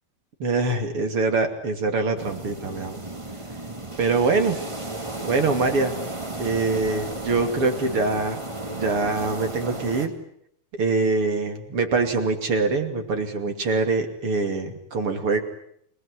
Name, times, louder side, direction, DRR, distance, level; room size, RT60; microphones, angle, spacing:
voice 1, 0.4-3.0 4.0-4.6 5.2-5.9 6.4-8.4 8.7-10.1 10.8-15.4, right 3 dB, 40° right, 5 dB, 3.2 m, -24 dB
sound 1, 2.2-10.1, right 2 dB, 20° right, 0.8 m, -34 dB
28.0 x 19.5 x 9.9 m, 0.71 s
omnidirectional pair, 4.4 m